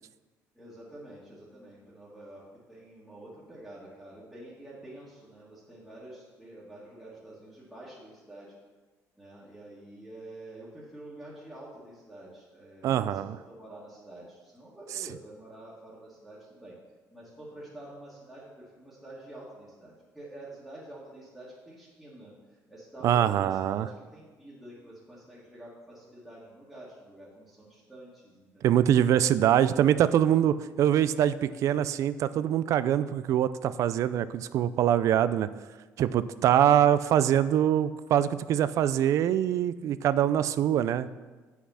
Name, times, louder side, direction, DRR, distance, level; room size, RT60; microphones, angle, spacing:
voice 1, 0.5-8.5 9.2-16.7 17.1-22.3 22.7-28.8, right 1 dB, 5° right, -8 dB, 1.7 m, -48 dB
voice 2, 12.8-13.4 23.0-23.9 28.6-35.5 36.0-41.1, right 10 dB, 60° right, 15 dB, 0.4 m, -24 dB
8.4 x 5.9 x 5.6 m, 1.3 s
cardioid pair, 145°, 6 cm